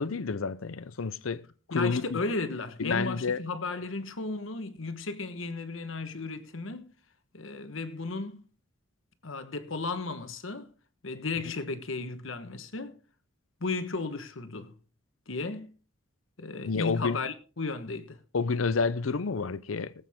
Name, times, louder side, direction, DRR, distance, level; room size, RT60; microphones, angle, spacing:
voice 1, 0.0-1.4 1.7-2.2 2.8-3.4 16.6-17.2 18.3-19.9, left 4 dB, 85° left, 0.6 m, -29 dB
voice 2, 1.7-6.9 7.3-8.4 9.2-10.7 11.0-13.0 13.6-14.7 15.3-15.7 16.4-18.2, left 3 dB, 70° left, 1.3 m, -34 dB
18.5 x 8.4 x 3.6 m
head